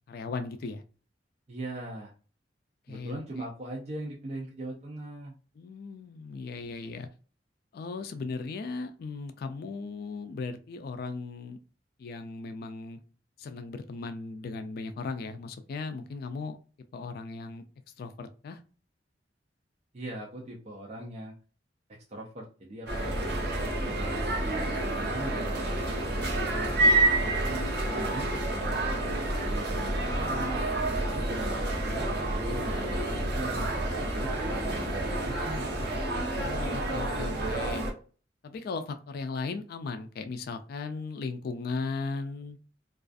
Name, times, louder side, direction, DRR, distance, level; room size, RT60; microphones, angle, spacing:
voice 1, 0.1-0.8 2.9-3.2 5.6-7.1 7.7-11.6 12.0-13.0 13.4-16.6 16.9-17.6 18.0-18.6 31.2-31.5 32.9-33.3 36.4-37.8 38.4-42.6, left 4 dB, 55° left, 9 dB, 0.3 m, -37 dB
voice 2, 1.5-2.1 2.9-5.3 19.9-21.3 21.9-23.4 23.8-26.1 26.5-26.9 27.2-27.7 28.0-28.9 29.2-30.6 31.1-33.6 34.0-35.7, right 1 dB, 35° right, -2 dB, 0.5 m, -40 dB
sound 1, 22.9-37.9, right 1 dB, 65° right, 1.0 m, -29 dB
2.4 x 2.3 x 2.4 m, 0.37 s
head